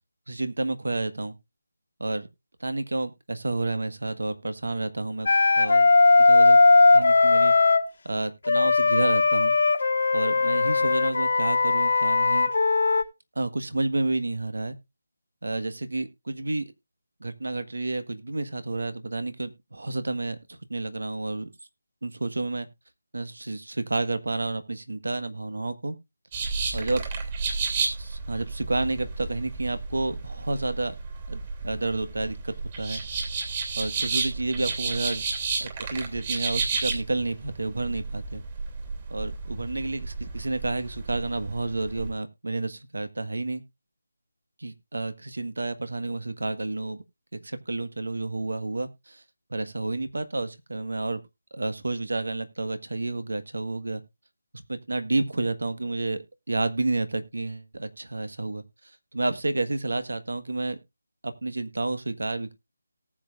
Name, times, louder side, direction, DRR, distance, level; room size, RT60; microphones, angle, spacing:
voice 1, 0.3-1.4 2.0-2.3 2.6-5.3 5.6-5.9 6.2-6.6 6.9-7.5 8.0-9.6 10.1-12.5 13.3-14.8 15.4-16.7 17.2-21.5 22.0-22.7 23.1-26.0 26.7-27.0 28.0-30.9 31.3-33.0 33.8-35.2 35.6-38.4 39.1-43.6 44.6-47.0 47.3-49.2 49.5-51.2 51.5-54.0 54.7-58.6 59.1-60.8 61.2-62.5, right 2 dB, 75° right, 11 dB, 1.4 m, -30 dB
Wind instrument woodwind instrument, 5.3-7.9 8.5-13.0, left 3 dB, 55° left, 1.4 m, -19 dB
sound 1, 26.3-42.1, right 4 dB, 30° right, 2.8 m, -32 dB
18.5 x 7.6 x 2.5 m, 0.23 s
figure-of-eight pair, 165°, 0 cm